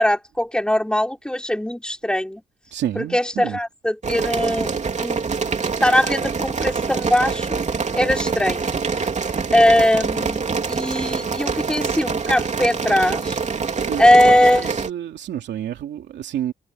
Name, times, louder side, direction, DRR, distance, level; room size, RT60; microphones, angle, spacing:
voice 1, 0.0-2.4 2.9-4.7 5.0-5.2 5.8-7.6 7.9-9.1 9.5-10.4 10.7-13.4 14.0-14.7, left 1 dB, 5° left, 3.9 m, -20 dB
voice 2, 2.7-3.6 13.6-16.5, right 11 dB, 85° right, 2.7 m, -30 dB
sound 1, 4.0-14.9, right 5 dB, 40° right, 3.0 m, -25 dB
cardioid pair, 80°, 18 cm